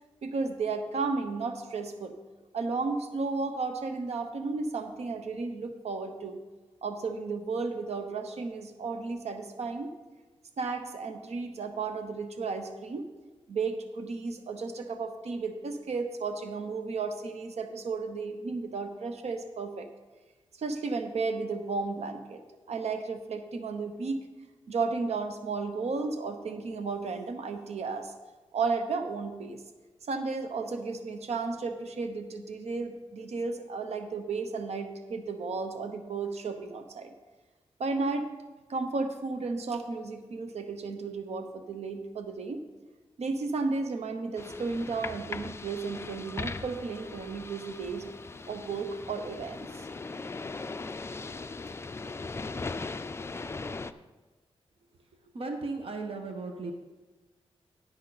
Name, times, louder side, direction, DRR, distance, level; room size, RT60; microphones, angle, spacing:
voice 1, 0.2-2.1 2.5-6.4 6.8-9.9 10.6-13.1 13.5-19.9 20.6-22.4 22.7-24.2 24.7-28.1 28.5-29.6 30.1-37.1 37.8-38.3 38.7-42.6 43.2-48.1 48.5-49.9, right 4 dB, 80° right, 7 dB, 0.8 m, -33 dB
sound 1, 44.4-53.9, left 3 dB, 25° left, 0.4 m, -39 dB
voice 2, 55.1-56.7, right 3 dB, 60° right, 4 dB, 1.1 m, -36 dB
10.5 x 9.7 x 4.0 m, 1.3 s
wide cardioid pair, 140°, 11 cm